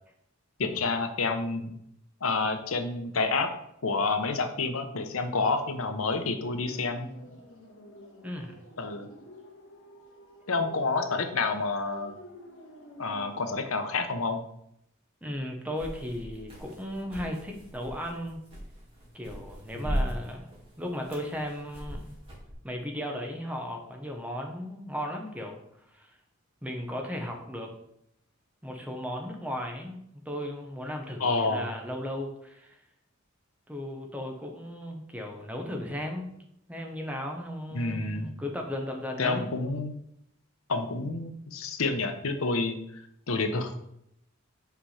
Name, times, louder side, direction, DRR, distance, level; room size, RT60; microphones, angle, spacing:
voice 1, 0.6-1.7 2.2-3.5 3.8-7.1 8.8-9.1 10.5-12.1 13.0-14.4 19.7-20.1 31.2-31.7 37.7-38.3 39.2-40.0 40.7-43.8, left 3 dB, 80° left, 7 dB, 0.9 m, -29 dB
sound 1, 5.5-13.5, equal, 65° left, 1.7 m, -50 dB
voice 2, 8.2-8.5 15.2-18.4 19.1-22.2 22.6-25.6 25.9-26.1 26.6-27.7 28.6-32.8 33.7-36.3 36.7-39.4, equal, 5° right, 2 dB, 1.1 m, -36 dB
sound 2, 15.7-22.5, equal, 25° right, 2.5 m, -38 dB
5.8 x 4.9 x 5.7 m, 0.76 s
head